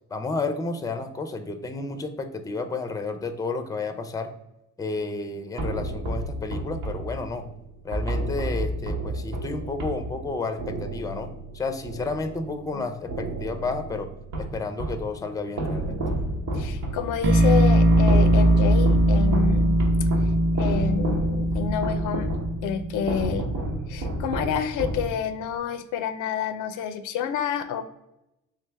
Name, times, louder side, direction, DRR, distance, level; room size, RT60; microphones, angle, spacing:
voice 1, 0.1-4.3 4.8-7.4 7.8-14.1 14.4-16.0, left 3 dB, 10° left, 8 dB, 0.4 m, -31 dB
sound 1, 5.6-12.7 13.1-15.1 15.6-25.5, right 2 dB, 90° right, 1.1 m, -31 dB
voice 2, 16.5-19.8 20.5-22.4 22.6-23.5 23.9-27.8, left 8 dB, 85° left, 10 dB, 0.5 m, -29 dB
sound 2, 17.2-23.3, right 1 dB, 40° right, 0.6 m, -20 dB
3.5 x 3.3 x 3.3 m, 0.88 s
cardioid pair, 90°, 30 cm